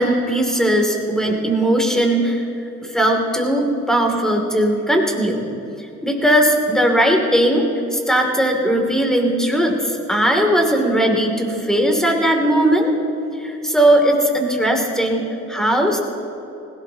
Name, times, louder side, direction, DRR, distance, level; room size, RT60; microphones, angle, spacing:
voice 1, 0.0-2.4 2.8-5.4 6.0-7.7 7.9-12.9 13.4-16.0, right 1 dB, ahead, 1 dB, 2.6 m, -18 dB
20.5 x 17.0 x 2.9 m, 2.9 s
cardioid pair, 90°, 30 cm